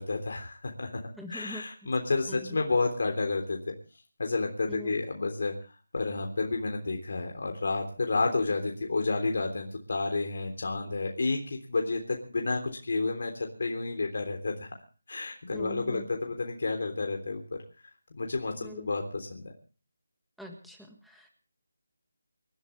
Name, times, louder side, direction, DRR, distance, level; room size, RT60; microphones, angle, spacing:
voice 1, 0.0-1.0 1.3-3.7 4.2-5.5 5.9-14.8 15.1-17.4 18.1-19.5, left 3 dB, 55° left, 2 dB, 3.4 m, -30 dB
voice 2, 1.2-1.6 2.3-2.6 4.7-5.0 15.5-16.1 18.6-18.9 20.4-21.3, left 1 dB, ahead, 1 dB, 1.7 m, -44 dB
28.0 x 12.5 x 3.3 m, 0.37 s
figure-of-eight pair, 170°, 0 cm